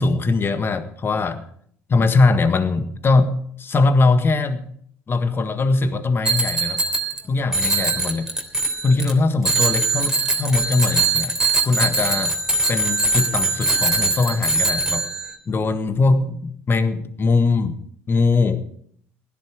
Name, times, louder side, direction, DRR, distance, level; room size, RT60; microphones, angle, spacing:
voice 1, 0.0-1.4 1.9-4.7 5.1-6.8 7.2-8.2 8.8-11.3 11.6-12.3 12.7-15.1 15.5-16.4 16.7-17.7 18.1-18.6, left 3 dB, 35° left, 10 dB, 1.6 m, -20 dB
Bicycle bell, 6.2-7.2 7.5-9.1 9.4-15.3, right 3 dB, 10° right, 3.2 m, -21 dB
16.5 x 11.0 x 4.9 m, 0.64 s
hypercardioid pair, 65°, 7 cm